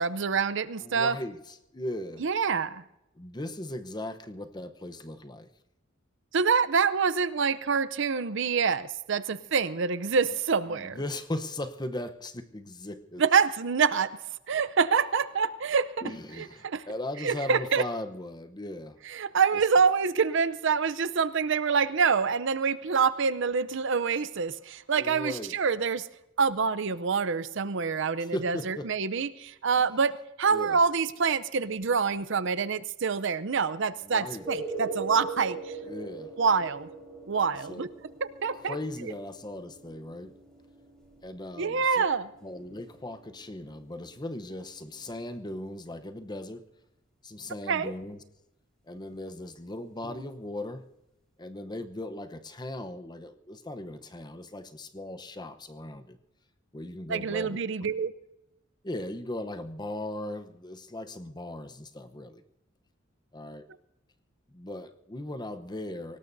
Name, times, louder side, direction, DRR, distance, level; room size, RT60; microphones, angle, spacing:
voice 1, 0.0-1.2 2.2-2.8 6.3-11.0 13.2-14.2 14.5-15.9 16.6-16.8 17.2-17.8 19.1-26.1 26.4-35.6 36.4-36.9 37.3-37.9 38.4-38.8 41.6-42.3 47.7-47.9 57.1-58.1, right 5 dB, 65° right, 16 dB, 0.6 m, -26 dB
voice 2, 0.8-2.2 3.2-5.5 10.7-13.2 16.0-19.0 19.5-19.6 24.9-25.6 28.2-28.9 30.5-30.8 34.0-34.5 35.8-36.3 37.7-37.9 38.7-40.3 41.2-42.1 42.4-46.6 47.2-48.2 48.9-50.8 51.4-56.2 56.7-57.9 58.8-62.4 63.3-63.7 64.5-66.2, left 1 dB, 20° left, 9 dB, 0.8 m, -38 dB
sound 1, 34.2-45.8 50.0-50.1, right 3 dB, 5° left, 4.4 m, -42 dB
23.5 x 18.5 x 2.7 m, 0.89 s
head